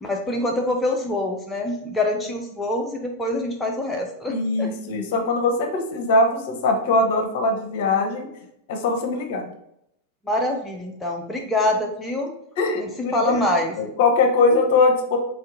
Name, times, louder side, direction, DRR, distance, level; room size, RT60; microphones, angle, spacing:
voice 1, 0.0-4.7 10.3-12.4 12.8-13.7, left 1 dB, 10° left, 2 dB, 0.4 m, -25 dB
voice 2, 4.3-8.3 8.7-9.5 12.6-13.4 13.8-15.2, left 3 dB, 50° left, 4 dB, 0.6 m, -21 dB
3.3 x 2.6 x 3.7 m, 0.77 s
figure-of-eight pair, 90°, 0 cm